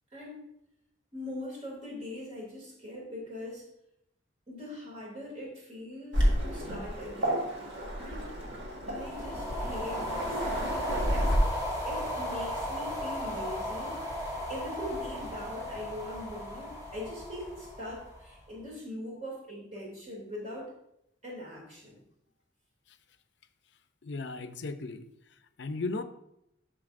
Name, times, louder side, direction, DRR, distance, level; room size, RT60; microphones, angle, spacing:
voice 1, 0.1-0.4 1.1-3.6 4.5-7.5 8.0-8.2 8.8-14.0 14.5-20.7 21.2-22.0, left 1 dB, 35° right, -4 dB, 2.7 m, -41 dB
Waves surf, 6.1-11.4, equal, 70° right, 1.7 m, -31 dB
sound 1, 8.9-18.4, equal, 20° right, 2.0 m, -36 dB
voice 2, 24.0-25.0 25.6-26.0, left 3 dB, 65° left, 9 dB, 0.6 m, -35 dB
11.0 x 6.6 x 2.6 m, 0.80 s
head